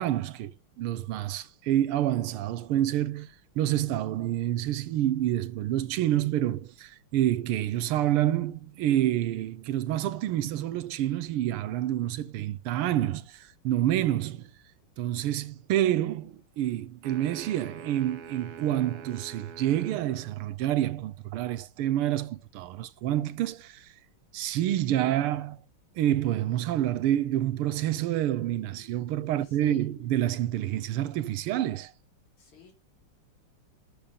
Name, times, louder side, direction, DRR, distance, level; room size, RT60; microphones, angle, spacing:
voice 1, 0.0-3.3 3.6-14.5 15.0-23.9 24.3-25.6 26.0-31.9, right 12 dB, 90° right, 1.7 m, -28 dB
sound 1, 17.0-20.4, right 6 dB, 60° right, 1.1 m, -45 dB
sound 2, 26.0-31.3, right 1 dB, 45° left, 4.3 m, -56 dB
voice 2, 29.3-29.9 32.3-32.7, left 4 dB, 80° left, 4.1 m, -54 dB
12.5 x 6.5 x 5.4 m
omnidirectional pair, 2.4 m